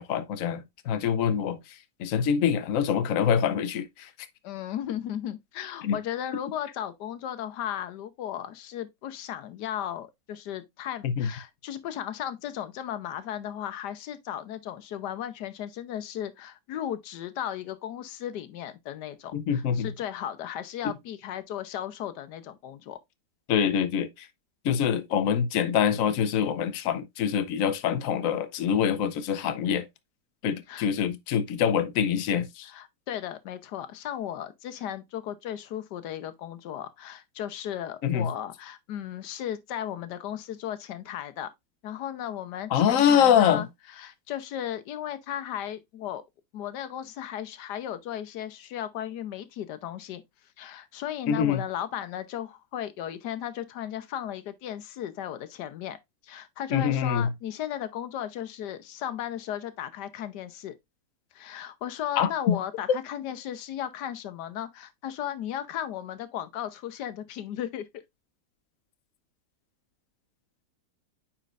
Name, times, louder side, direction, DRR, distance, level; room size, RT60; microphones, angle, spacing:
voice 1, 0.0-1.6 2.0-4.1 5.8-6.0 11.0-11.3 19.3-19.9 23.5-24.3 24.6-29.9 30.4-32.7 38.0-38.3 42.7-43.7 51.3-51.6 56.7-57.3 62.2-62.6, left 8 dB, 65° left, 1.0 m, -25 dB
voice 2, 4.4-23.0 30.7-30.9 32.7-41.5 41.8-46.2 46.5-50.2 50.6-56.0 56.2-60.8 61.3-68.0, left 10 dB, 85° left, 1.4 m, -35 dB
9.1 x 4.4 x 2.4 m
omnidirectional pair, 1.7 m